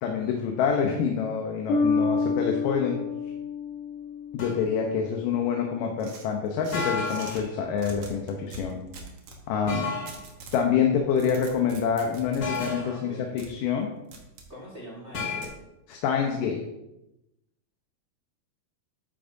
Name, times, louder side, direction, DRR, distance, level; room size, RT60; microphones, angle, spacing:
voice 1, 0.0-3.0 4.3-8.8 9.5-9.9 10.5-13.9 15.9-16.6, left 7 dB, 80° left, 2 dB, 2.5 m, -26 dB
Bass guitar, 1.7-5.2, left 4 dB, 55° left, 1.7 m, -28 dB
sound 1, 4.4-4.7 6.7-7.5 9.7-10.2 12.4-13.0 15.1-15.5, left 4 dB, 40° left, 2.0 m, -31 dB
sound 2, 6.0-7.4 7.8-9.4 10.1-10.6 11.0-12.7 13.4-13.5 14.1-14.5 15.4-15.6, right 3 dB, 60° right, 1.8 m, -44 dB
voice 2, 12.8-13.4 14.5-15.5, equal, 35° right, -3 dB, 1.0 m, -43 dB
10.5 x 8.7 x 2.6 m, 0.92 s
omnidirectional pair, 3.8 m